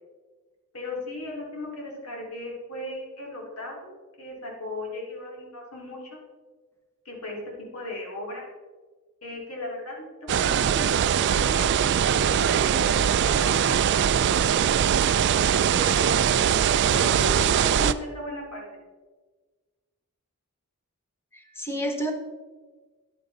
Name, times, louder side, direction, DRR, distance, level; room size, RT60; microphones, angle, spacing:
voice 1, 0.7-6.2 7.0-8.5 9.2-15.0 15.8-16.4 16.9-18.8, left 1 dB, 80° left, -1 dB, 2.9 m, -37 dB
sound 1, 10.3-17.9, right 8 dB, 50° right, 0.3 m, -22 dB
voice 2, 21.3-22.1, right 1 dB, 10° left, 3 dB, 1.2 m, -30 dB
9.8 x 9.1 x 3.9 m, 1.4 s
head